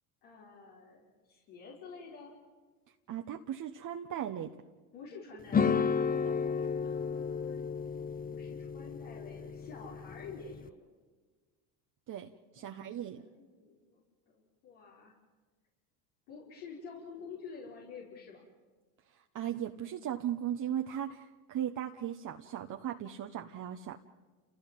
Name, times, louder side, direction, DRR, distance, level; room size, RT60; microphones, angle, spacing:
voice 1, 0.2-2.3 4.9-5.9 6.8-7.8 8.2-10.9 12.5-14.0 14.3-15.1 16.3-18.4, left 5 dB, 75° left, -4 dB, 5.2 m, -49 dB
voice 2, 3.1-4.5 6.2-6.4 12.1-13.2 19.1-24.0, right 10 dB, 45° right, 3 dB, 1.3 m, -37 dB
sound 1, 5.5-10.7, left 6 dB, 20° left, 0.8 m, -33 dB
29.5 x 16.0 x 7.7 m, 1.4 s
supercardioid pair, 90°, 44 cm